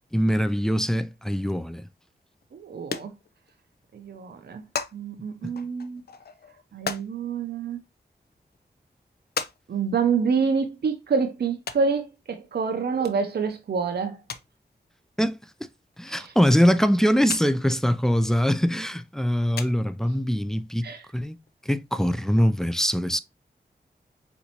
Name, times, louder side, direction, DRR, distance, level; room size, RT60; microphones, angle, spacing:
voice 1, 0.1-1.8 5.4-5.5 15.2-15.4 16.0-20.8 21.1-21.4 21.7-23.2, equal, 5° left, 0.4 m, -23 dB
sound 1, 2.4-2.5 2.8-3.7 4.0-4.1 4.3-5.0 5.4-7.1 7.9-8.0 8.5-8.6 9.4-9.6 9.8-9.9 11.7-11.8 13.0-13.2 13.5-13.6 13.9-14.0 14.3-14.6 15.9-16.0 16.4-16.5 17.3-17.5 17.7-17.8 19.1-19.2 19.5-20.0 20.9-21.0 21.2-21.3 21.5-21.6, left 6 dB, 70° left, 0.5 m, -34 dB
voice 2, 2.5-3.1 3.9-4.6 4.9-6.0 6.7-7.8 9.7-14.2 16.1-16.3 20.8-21.1, right 5 dB, 75° right, 0.6 m, -27 dB
4.3 x 2.6 x 2.8 m
cardioid pair, 50°, 17 cm